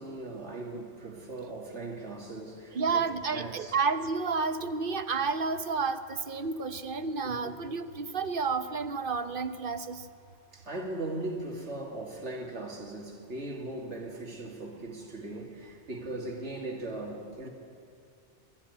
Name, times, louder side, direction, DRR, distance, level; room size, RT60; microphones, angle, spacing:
voice 1, 0.0-3.0 3.3-3.7 7.2-7.6 10.5-17.5, right 2 dB, 90° right, 2 dB, 3.0 m, -39 dB
voice 2, 2.7-10.0, right 4 dB, 55° right, 11 dB, 1.1 m, -31 dB
22.0 x 14.5 x 9.8 m, 2.6 s
omnidirectional pair, 1.1 m